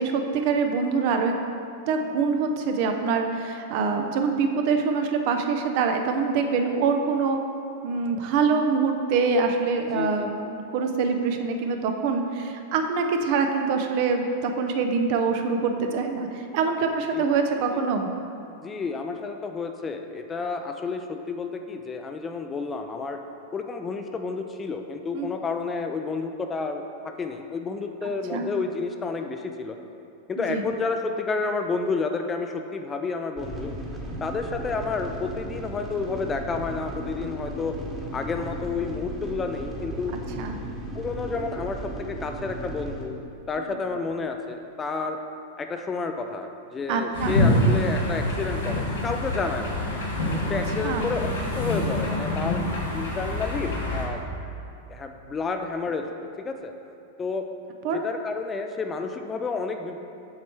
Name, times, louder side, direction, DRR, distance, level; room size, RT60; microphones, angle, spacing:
voice 1, 0.0-1.3 1.9-7.4 7.8-18.1 25.1-25.3 28.3-28.5 30.4-30.6 40.4-40.6 46.9-47.3 50.8-51.1 57.8-58.0, right 5 dB, 55° right, 5 dB, 0.5 m, -25 dB
voice 2, 9.9-10.3 17.1-17.2 17.7-17.9 18.6-23.2 23.5-26.8 27.2-29.8 30.3-33.7 34.2-37.8 38.1-40.2 40.9-43.2 43.5-45.2 45.6-49.8 50.5-52.7 52.9-54.2 54.9-56.1 56.4-56.7 57.2-57.5 57.9-60.0, left 4 dB, 20° left, 5 dB, 0.4 m, -30 dB
sound 1, 33.4-43.0, right 1 dB, 20° right, 1.1 m, -36 dB
sound 2, 47.1-54.0, left 1 dB, 80° left, 1.3 m, -26 dB
7.4 x 3.2 x 4.5 m, 2.8 s
hypercardioid pair, 95°, 0 cm